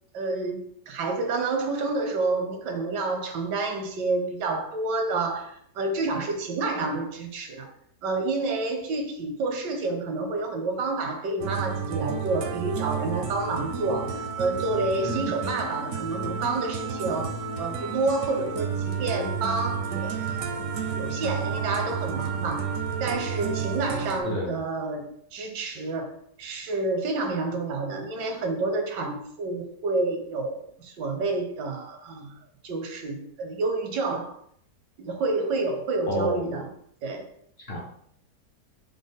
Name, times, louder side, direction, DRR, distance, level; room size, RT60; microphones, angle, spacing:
voice 1, 0.1-7.7 8.0-17.3 17.6-20.6 21.0-22.7 23.0-26.1 26.4-32.3 32.6-34.4 35.0-36.7 37.0-37.3, right 3 dB, 85° right, 5 dB, 1.4 m, -29 dB
sound 1, 11.4-24.2, right 6 dB, 70° right, 0.8 m, -31 dB
voice 2, 15.0-15.5 24.2-24.6 36.1-36.6 37.7-37.8, left 1 dB, 50° left, -3 dB, 0.7 m, -30 dB
5.1 x 2.1 x 3.5 m, 0.65 s
omnidirectional pair, 1.8 m